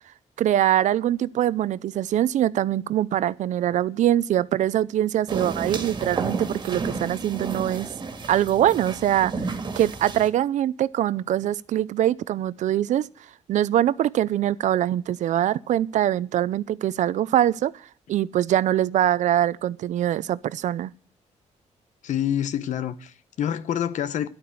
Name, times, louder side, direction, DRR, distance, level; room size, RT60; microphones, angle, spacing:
voice 1, 0.4-7.9 8.3-13.1 13.5-17.7 18.1-20.9, right 12 dB, 85° right, 0.6 m, -23 dB
sound 1, 5.3-10.3, right 4 dB, 35° right, 1.9 m, -32 dB
voice 2, 22.0-24.3, left 10 dB, 85° left, 1.0 m, -27 dB
11.5 x 9.0 x 8.4 m
cardioid pair, 135°, 12 cm